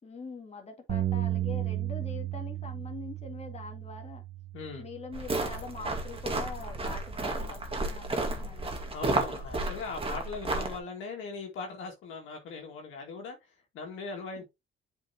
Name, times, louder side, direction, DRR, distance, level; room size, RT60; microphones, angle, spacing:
voice 1, 0.0-4.2 4.8-8.9 14.4-14.5, left 4 dB, 35° left, 2.1 m, -43 dB
Bass guitar, 0.9-7.1, right 13 dB, 60° right, 1.6 m, -35 dB
voice 2, 4.5-4.9 8.9-13.4 13.7-14.4, left 4 dB, 90° left, 2.2 m, -39 dB
sound 1, 5.1-10.8, right 2 dB, 30° right, 1.8 m, -32 dB
7.8 x 5.2 x 2.9 m
cardioid pair, 90°, 20 cm